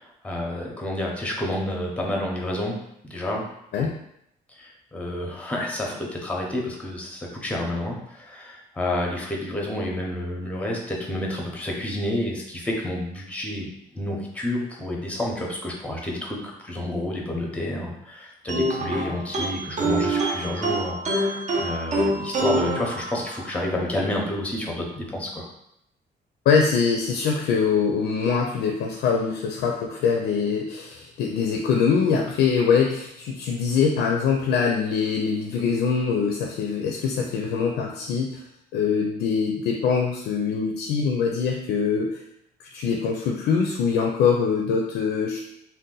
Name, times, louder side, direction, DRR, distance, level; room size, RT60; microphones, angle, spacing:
voice 1, 0.0-2.8 3.0-3.5 3.8-3.9 4.6-25.4, left 1 dB, 10° left, -1 dB, 0.6 m, -29 dB
sound 1, 18.5-23.6, right 1 dB, 45° right, 0.6 m, -26 dB
voice 2, 26.5-38.4 38.7-42.1 42.6-45.4, left 6 dB, 85° left, 1 dB, 0.4 m, -23 dB
2.7 x 2.1 x 3.7 m, 0.76 s
cardioid pair, 120°, 17 cm